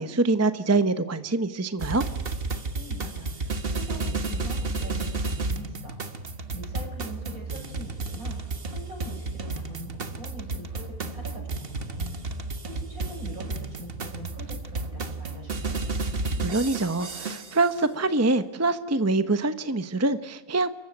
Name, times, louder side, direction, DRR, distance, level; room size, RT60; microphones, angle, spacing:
voice 1, 0.0-2.0 16.4-20.7, right 2 dB, 15° right, 11 dB, 0.8 m, -25 dB
sound 1, 1.8-17.7, right 3 dB, 40° right, 1.5 m, -32 dB
voice 2, 2.7-12.1 12.7-15.8, right 1 dB, 70° right, 2 dB, 7.4 m, -43 dB
28.5 x 15.0 x 9.9 m, 1.1 s
omnidirectional pair, 1.6 m